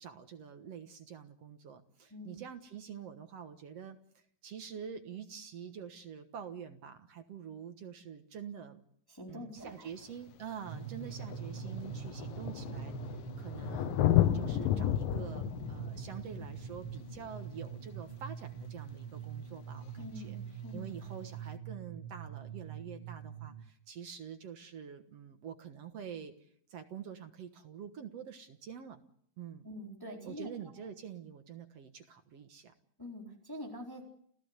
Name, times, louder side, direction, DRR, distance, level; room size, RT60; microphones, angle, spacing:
voice 1, 0.0-4.0 4.4-8.8 9.3-14.0 14.3-20.4 20.7-29.0 29.4-29.7 30.3-32.7, right 8 dB, 55° right, 7 dB, 2.1 m, -46 dB
voice 2, 9.1-9.9 20.0-20.8 29.6-30.7 33.0-34.1, left 1 dB, 5° left, 0 dB, 3.7 m, -45 dB
Thunder, 9.7-9.8 10.7-10.8 11.0-18.3 20.0-20.1, left 12 dB, 80° left, 2.8 m, -33 dB
sound 1, 10.6-23.6, right 7 dB, 25° right, 1.1 m, -44 dB
29.5 x 15.5 x 8.1 m, 0.66 s
omnidirectional pair, 4.0 m